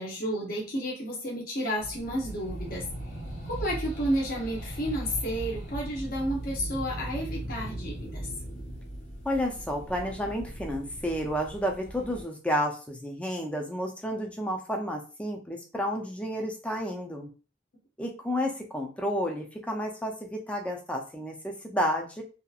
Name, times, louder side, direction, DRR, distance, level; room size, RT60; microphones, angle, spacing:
voice 1, 0.0-2.8 3.4-8.3, equal, 45° left, -3 dB, 0.7 m, -31 dB
sound 1, 1.8-12.2, right 1 dB, 80° left, 1.4 m, -38 dB
voice 2, 9.3-17.3 18.0-22.2, equal, 5° left, 2 dB, 0.4 m, -31 dB
2.8 x 2.3 x 2.3 m, 0.35 s
head